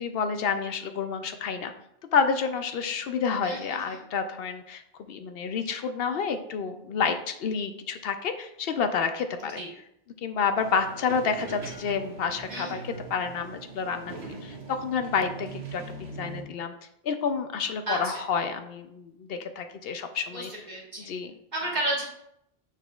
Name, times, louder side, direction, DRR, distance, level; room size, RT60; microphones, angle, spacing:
voice 1, 0.0-1.7 2.1-4.8 5.1-9.6 10.2-16.7 17.0-20.5 21.1-21.3 21.6-21.7, left 6 dB, 70° left, 8 dB, 0.8 m, -29 dB
voice 2, 3.4-4.0 9.6-9.7 12.5-12.9 17.9-18.1 20.3-21.1 21.5-22.0, right 1 dB, 45° right, -3 dB, 1.7 m, -32 dB
sound 1, 10.6-16.4, right 3 dB, 80° right, 1.4 m, -41 dB
6.8 x 5.8 x 2.4 m, 0.77 s
omnidirectional pair, 1.1 m